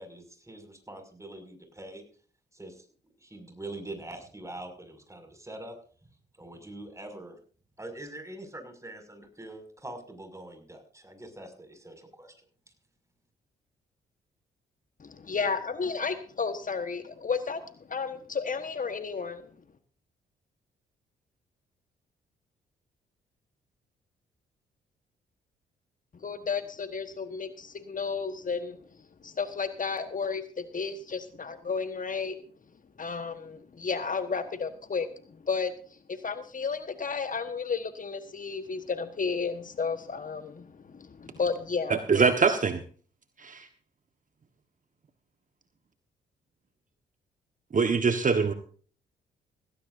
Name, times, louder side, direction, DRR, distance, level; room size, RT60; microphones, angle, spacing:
voice 1, 0.0-2.0 2.5-2.9 3.2-5.8 6.4-7.4 7.8-12.3, right 1 dB, 15° right, 6 dB, 6.1 m, -43 dB
voice 2, 15.0-19.5 26.2-28.8 29.2-32.4 33.0-42.0, left 5 dB, 40° left, 10 dB, 1.4 m, -33 dB
voice 3, 41.9-42.8 43.4-43.7 47.7-48.5, right 5 dB, 40° right, 8 dB, 1.4 m, -23 dB
17.0 x 16.5 x 2.7 m, 0.43 s
hypercardioid pair, 50°, 20 cm